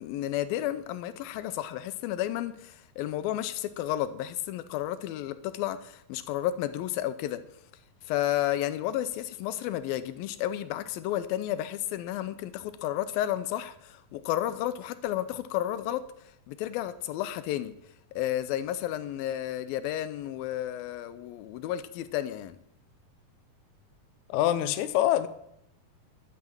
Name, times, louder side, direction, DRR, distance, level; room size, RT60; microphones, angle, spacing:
voice 1, 0.0-7.4 8.0-16.1 16.5-17.7 18.2-22.6, left 12 dB, 90° left, 2.5 m, -32 dB
voice 2, 24.3-25.3, left 12 dB, 75° left, 1.9 m, -25 dB
11.5 x 9.5 x 7.5 m
omnidirectional pair, 4.2 m